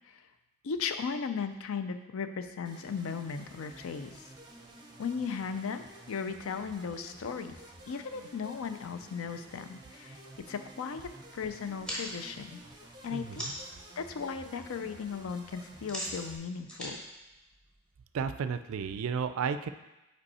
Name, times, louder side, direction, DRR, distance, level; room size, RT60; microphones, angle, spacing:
voice 1, 0.6-4.1 5.0-7.6 7.9-10.2 10.5-12.6 13.0-13.5 14.0-17.0, left 6 dB, 70° left, 9 dB, 0.4 m, -36 dB
sound 1, 2.6-16.4, right 1 dB, 20° right, 0.6 m, -51 dB
sound 2, 11.7-13.8 14.2-14.6 14.9-18.1, equal, 5° left, 0.9 m, -41 dB
voice 2, 13.1-13.5 18.1-19.7, right 6 dB, 70° right, 11 dB, 0.3 m, -33 dB
5.3 x 4.5 x 4.2 m, 0.99 s
head